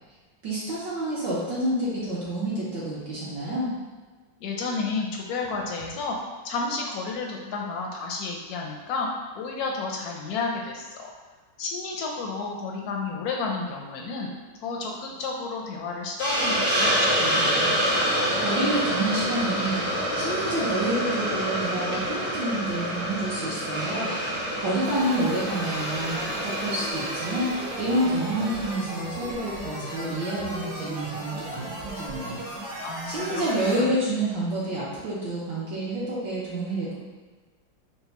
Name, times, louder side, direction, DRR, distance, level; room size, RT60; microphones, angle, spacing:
voice 1, 0.4-3.7 18.4-24.1 24.6-27.5 27.8-32.4 33.1-37.0, right 1 dB, 75° right, -9 dB, 1.5 m, -28 dB
voice 2, 4.4-6.2 6.4-9.1 9.3-11.1 11.6-14.3 14.6-17.8 32.8-33.4 33.8-33.9, left 4 dB, 70° left, 0 dB, 0.9 m, -31 dB
Hiss, 16.2-28.7, equal, 5° right, 0.5 m, -27 dB
sound 1, 24.8-33.8, right 1 dB, 45° right, 0.8 m, -36 dB
4.1 x 2.2 x 4.0 m, 1.4 s
omnidirectional pair, 2.0 m